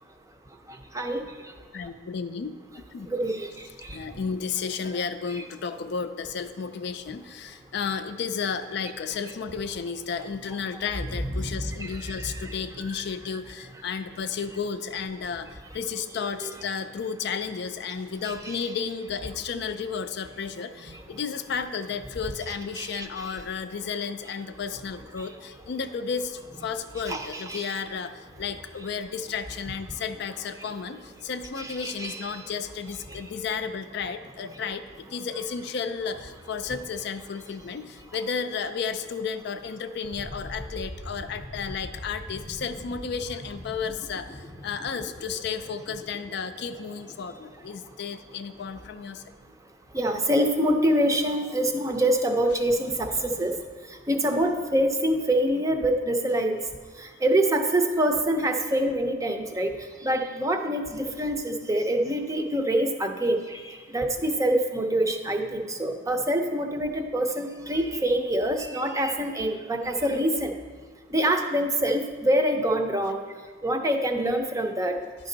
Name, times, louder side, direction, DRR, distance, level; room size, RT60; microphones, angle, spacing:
voice 1, 1.7-2.5 2.9-3.1 3.9-49.2 63.5-63.7, left 6 dB, 60° left, 10 dB, 0.4 m, -33 dB
voice 2, 3.1-3.5 3.9-4.0 11.4-12.6 16.4-16.5 18.2-18.3 22.8-23.4 27.1-27.7 31.6-32.2 49.9-53.5 54.1-56.6 57.2-59.7 60.0-63.6 63.9-70.5 71.1-73.2 73.6-75.0, right 1 dB, 15° right, 4 dB, 0.5 m, -25 dB
sound 1, 40.0-48.9, left 1 dB, 30° left, 0.7 m, -43 dB
10.0 x 5.2 x 3.9 m, 1.6 s
head